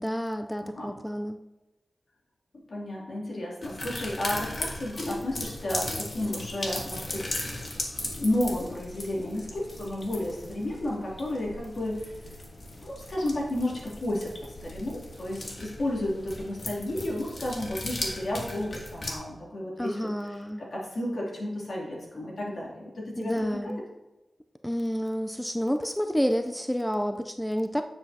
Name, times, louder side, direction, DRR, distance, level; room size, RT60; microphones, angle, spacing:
voice 1, 0.0-1.4 19.8-20.6 23.2-23.8 24.6-27.8, equal, 5° left, 6 dB, 0.5 m, -29 dB
voice 2, 2.7-7.3 8.1-12.3 12.8-14.3 14.6-23.8, left 1 dB, 70° left, -4 dB, 2.8 m, -32 dB
sound 1, 3.6-19.1, left 1 dB, 55° left, 1.7 m, -37 dB
9.2 x 7.9 x 2.8 m, 1.1 s
cardioid pair, 50°, 0 cm